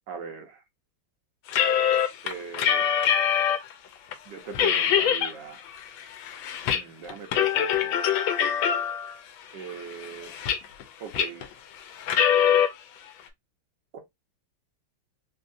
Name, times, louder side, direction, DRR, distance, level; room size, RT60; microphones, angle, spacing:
voice 1, 0.1-0.6 2.2-2.9 4.3-5.6 6.7-8.0 9.5-10.3 11.0-11.5 13.9-14.0, right 6 dB, 70° right, 1.2 m, -40 dB
sound 1, 1.5-3.7 4.1-4.2 4.5-5.3 5.7-6.8 7.1-9.1 9.7-10.8 11.1-11.5 12.0-12.7, left 9 dB, 80° left, 1.4 m, -23 dB
3.6 x 2.7 x 2.4 m
omnidirectional pair, 2.2 m